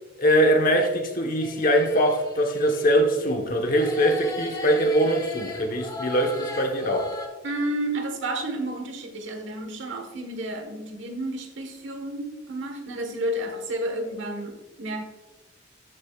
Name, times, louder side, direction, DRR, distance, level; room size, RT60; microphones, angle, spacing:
voice 1, 0.2-7.1, equal, 45° left, 1.2 m, -22 dB
sound 1, 1.4-3.4 3.6-7.3, left 2 dB, 20° left, 1.1 m, -38 dB
voice 2, 7.4-15.0, right 1 dB, 70° right, 1.4 m, -31 dB
12.5 x 6.8 x 2.4 m
head